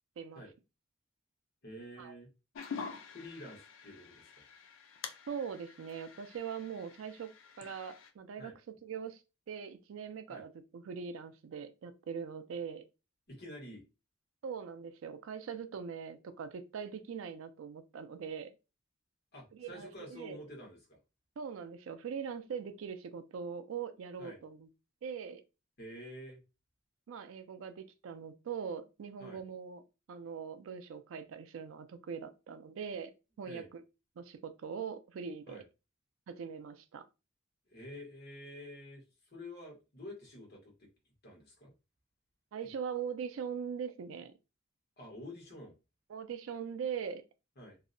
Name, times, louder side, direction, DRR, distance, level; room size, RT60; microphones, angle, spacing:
voice 1, 1.6-2.3 3.1-4.4 8.4-8.5 10.3-10.4 13.3-13.8 19.3-21.0 24.2-24.4 25.8-26.4 29.2-29.4 33.4-33.7 35.5-35.6 37.7-39.0 39.3-40.9 41.2-41.7 42.6-42.7 45.0-45.8 47.6-47.8, left 1 dB, 50° left, 1.1 m, -49 dB
sound 1, 2.6-8.1, left 6 dB, 70° left, 0.4 m, -47 dB
voice 2, 5.3-7.3 7.6-8.5 8.8-9.2 9.5-12.8 14.4-18.5 19.5-20.4 21.4-24.7 25.0-25.4 27.1-29.8 30.1-33.1 33.4-33.8 34.2-35.6 36.3-37.1 42.5-44.3 46.1-47.2, right 6 dB, 80° right, 0.4 m, -41 dB
2.6 x 2.0 x 2.5 m
head